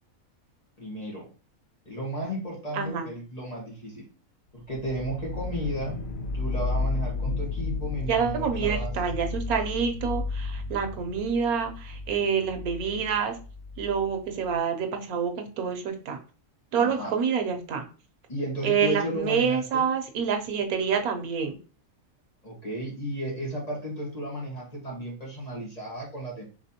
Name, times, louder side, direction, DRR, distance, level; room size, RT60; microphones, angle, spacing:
voice 1, 0.8-1.3 1.8-4.1 4.5-6.0 6.3-9.2 16.8-17.1 18.3-19.9 22.4-26.4, right 1 dB, 30° left, -3 dB, 1.4 m, -34 dB
voice 2, 2.7-3.1 8.1-13.4 13.8-16.2 16.7-17.8 18.6-21.6, right 6 dB, 85° right, 6 dB, 1.3 m, -27 dB
sound 1, 4.7-14.6, left 3 dB, 55° left, 0.6 m, -33 dB
5.1 x 3.3 x 2.7 m, 0.36 s
omnidirectional pair, 1.5 m